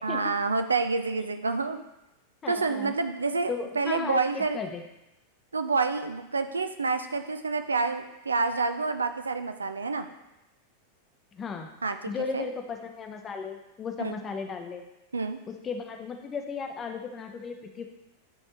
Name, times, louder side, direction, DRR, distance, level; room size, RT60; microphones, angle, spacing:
voice 1, 0.0-1.8 2.5-4.6 5.5-10.1 11.8-12.0 12.3-12.5 14.0-14.1 15.1-15.4, right 4 dB, 75° right, 8 dB, 0.4 m, -28 dB
voice 2, 2.4-3.0 3.5-4.8 11.3-11.7 12.1-14.8 15.5-17.9, left 5 dB, 25° left, 4 dB, 0.7 m, -35 dB
9.4 x 3.3 x 3.0 m, 0.92 s
figure-of-eight pair, 90°, 0 cm